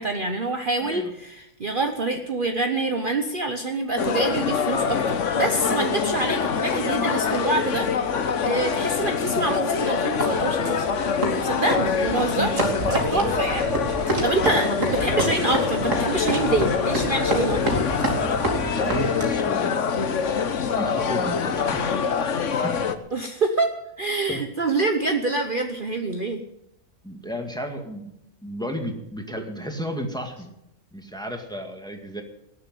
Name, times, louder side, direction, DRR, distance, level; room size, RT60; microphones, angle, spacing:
voice 1, 0.0-7.9 8.4-10.9 11.4-13.7 14.2-17.6 23.1-23.7 24.0-26.4, right 2 dB, 40° right, 5 dB, 1.1 m, -26 dB
voice 2, 0.8-1.1 13.1-13.3 14.4-14.6 18.7-20.0 20.7-21.8 22.6-22.9 24.3-24.4 27.0-28.1 28.4-30.5 30.9-32.2, equal, 5° left, 3 dB, 2.0 m, -33 dB
sound 1, 4.0-23.0, left 6 dB, 60° left, 1.3 m, -25 dB
sound 2, 10.2-19.5, right 2 dB, 65° right, 3.3 m, -29 dB
18.5 x 7.5 x 9.2 m, 0.82 s
omnidirectional pair, 1.4 m